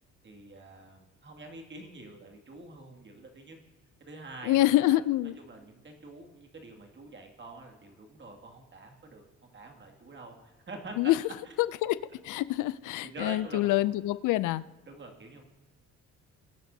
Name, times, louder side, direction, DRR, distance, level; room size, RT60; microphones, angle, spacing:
voice 1, 0.2-3.6 4.0-5.0 5.4-9.3 9.5-11.1 11.4-11.5 13.0-13.9 14.9-15.4, right 2 dB, 40° right, 2.3 m, -46 dB
voice 2, 4.4-5.4 11.0-11.2 11.6-12.0 12.2-14.6, left 15 dB, 85° left, 0.5 m, -26 dB
21.5 x 9.3 x 2.8 m
cardioid pair, 90°, 30 cm